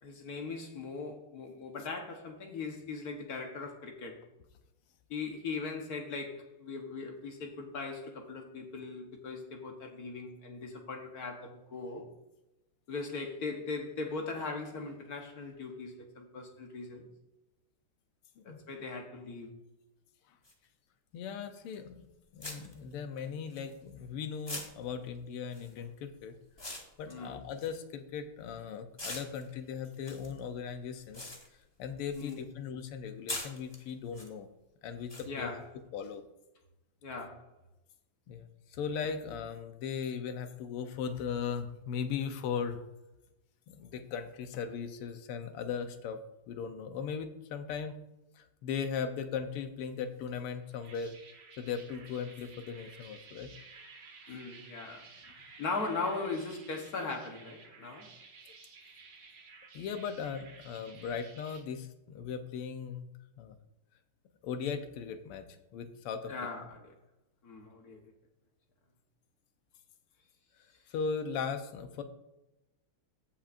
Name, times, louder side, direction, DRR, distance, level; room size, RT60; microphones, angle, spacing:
voice 1, 0.0-4.2 5.1-12.1 12.9-17.1 18.4-19.5 27.1-27.4 32.1-32.4 35.2-35.6 37.0-37.4 54.3-55.1 55.6-58.1 66.3-66.9 67.4-68.1, left 4 dB, 50° left, 1.4 m, -39 dB
sound 1, 20.4-20.5 21.7-21.9 22.4-24.1 24.4-28.5 28.9-32.4 32.7-34.3 35.1-35.2, left 1 dB, 20° left, 0.7 m, -44 dB
voice 2, 21.1-22.0 22.3-26.3 27.0-31.3 31.8-34.5 34.8-35.5 35.9-36.2 38.3-42.8 43.7-46.2 46.5-48.0 48.3-51.2 51.6-53.5 59.7-63.1 63.4-63.5 64.4-65.4 65.7-66.3 70.9-72.0, left 6 dB, 90° left, 1.7 m, -38 dB
sound 2, 50.6-61.6, right 4 dB, 55° right, 1.9 m, -54 dB
15.5 x 5.7 x 2.6 m
omnidirectional pair, 2.4 m